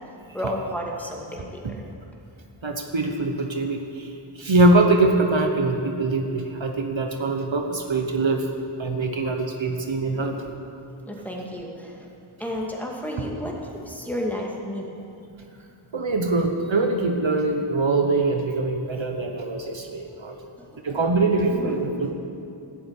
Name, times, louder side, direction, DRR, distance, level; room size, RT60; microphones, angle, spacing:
voice 1, 0.3-1.8 10.1-10.4 11.1-12.1 12.4-15.0 20.6-21.0 21.5-22.0, left 1 dB, 5° left, -2 dB, 2.2 m, -32 dB
voice 2, 2.6-8.5 8.8-10.4 15.9-20.3 20.8-21.9, right 2 dB, 65° right, 3 dB, 1.1 m, -23 dB
12.5 x 8.6 x 8.2 m, 2.7 s
wide cardioid pair, 55°, 50 cm